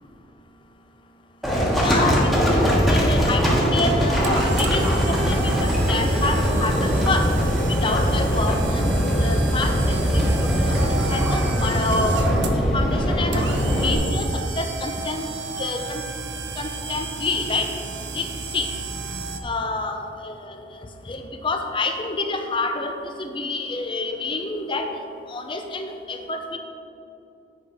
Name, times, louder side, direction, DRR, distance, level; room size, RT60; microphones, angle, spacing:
Livestock farm animals working animals, 1.4-13.9, equal, ahead, 1.4 m, -21 dB
voice 1, 1.8-7.3 7.7-8.9 9.2-12.1 12.7-13.5 13.8-15.3 15.6-16.0 16.6-17.7 18.1-18.3 18.5-18.7 19.4-20.4 21.1-22.9 23.2-24.9 25.3-26.6, left 3 dB, 30° left, 5 dB, 0.7 m, -28 dB
sound 1, 3.4-19.4, right 3 dB, 70° right, 0.7 m, -32 dB
8.9 x 5.9 x 4.9 m, 2.8 s
head